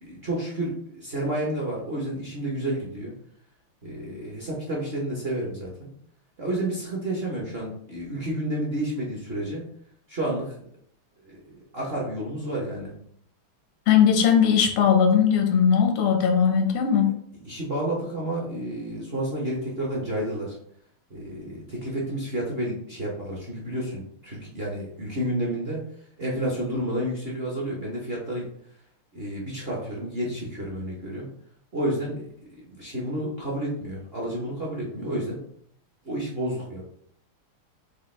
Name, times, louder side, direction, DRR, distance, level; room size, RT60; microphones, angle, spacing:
voice 1, 0.0-3.1 3.8-5.9 6.4-9.7 10.1-10.7 11.2-11.4 11.7-12.9 17.4-20.5 21.1-25.8 26.2-28.5 29.1-31.3 31.7-35.4 36.0-36.8, right 1 dB, 50° right, -4 dB, 0.7 m, -30 dB
voice 2, 13.9-17.1, left 7 dB, 90° left, 3 dB, 1.8 m, -19 dB
6.5 x 2.5 x 3.2 m, 0.66 s
omnidirectional pair, 2.4 m